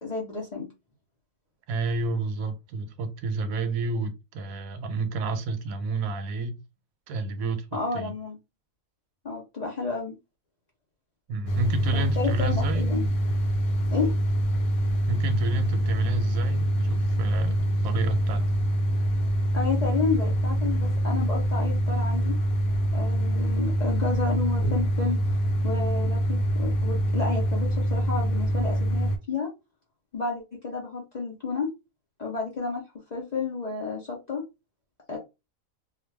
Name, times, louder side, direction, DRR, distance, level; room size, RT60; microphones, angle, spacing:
voice 1, 0.0-0.7 7.7-8.4 9.2-10.1 11.9-13.1 13.9-14.1 19.5-22.4 22.9-25.2 25.6-29.5 30.1-31.7 32.2-32.8 33.1-34.4 35.1-35.2, left 4 dB, 45° left, 0.5 m, -31 dB
voice 2, 1.7-6.5 7.1-7.7 7.9-8.1 11.3-12.8 15.1-17.6 17.8-18.4, right 3 dB, 90° right, 1.1 m, -30 dB
sound 1, 11.4-29.2, right 1 dB, 90° left, 1.1 m, -25 dB
2.4 x 2.2 x 3.2 m
omnidirectional pair, 1.4 m